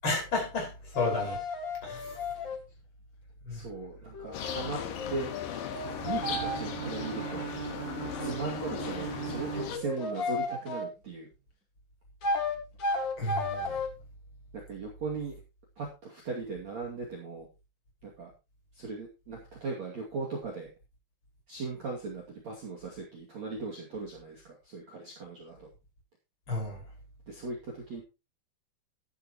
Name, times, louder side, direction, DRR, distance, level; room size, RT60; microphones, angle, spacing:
voice 1, 0.0-1.4 1.8-2.2 3.5-3.6 13.2-13.8 26.5-26.8, left 2 dB, 25° left, 5.9 m, -32 dB
sound 1, 0.9-2.6 4.1-6.6 9.5-10.9 12.2-13.9, left 3 dB, 85° left, 1.0 m, -33 dB
voice 2, 3.5-4.8 5.1-5.3 6.0-7.5 8.2-11.3 14.5-15.3 15.8-17.5 18.0-18.3 18.7-20.7 21.5-25.7 27.3-28.0, right 4 dB, 40° right, 3.1 m, -38 dB
sound 2, 4.3-9.8, left 8 dB, 65° left, 2.5 m, -38 dB
Bowed string instrument, 5.8-10.4, right 10 dB, 90° right, 3.9 m, -39 dB
13.5 x 11.5 x 3.1 m
omnidirectional pair, 5.6 m